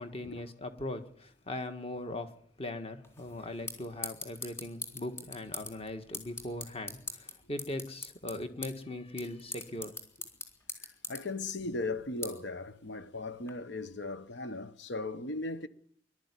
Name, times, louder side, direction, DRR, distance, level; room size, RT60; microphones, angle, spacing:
voice 1, 0.0-2.3 2.6-10.0, left 1 dB, 35° left, 1.7 m, -40 dB
sound 1, 3.0-13.5, left 2 dB, 15° left, 3.7 m, -45 dB
voice 2, 10.8-15.7, left 2 dB, 75° left, 1.2 m, -37 dB
21.5 x 12.5 x 9.8 m
head